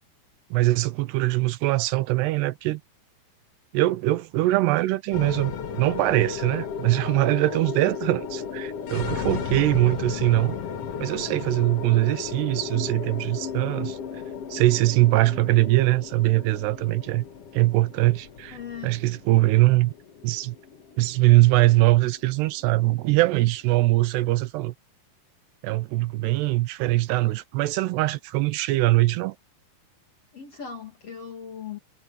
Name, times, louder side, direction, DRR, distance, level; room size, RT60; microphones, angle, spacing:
voice 1, 0.5-2.8 3.7-10.6 11.0-14.0 14.5-17.2 17.5-18.6 18.8-19.9 20.2-20.6 21.0-24.7 25.6-29.4, right 18 dB, 80° right, 2.6 m, -22 dB
sound 1, 5.1-23.5, left 6 dB, 70° left, 1.4 m, -35 dB
voice 2, 18.5-18.9 30.3-31.8, left 7 dB, 40° left, 2.8 m, -38 dB
omnidirectional pair, 5.3 m